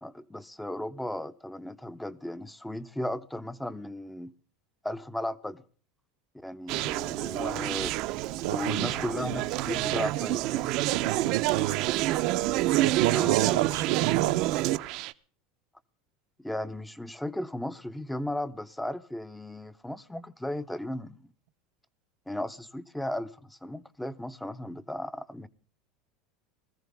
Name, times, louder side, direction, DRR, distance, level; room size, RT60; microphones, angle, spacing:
voice 1, 0.0-4.3 4.8-5.6 6.3-7.9 8.5-10.7 13.1-13.6 16.4-21.3 22.3-25.5, left 1 dB, 5° left, 0.6 m, -35 dB
Conversation, 6.7-15.1, right 16 dB, 45° right, 0.6 m, -28 dB
voice 2, 8.4-9.0 9.9-10.3 10.9-11.9 12.7-14.4, right 15 dB, 85° right, 1.0 m, -30 dB
20.5 x 15.0 x 3.4 m
supercardioid pair, 170°, 0 cm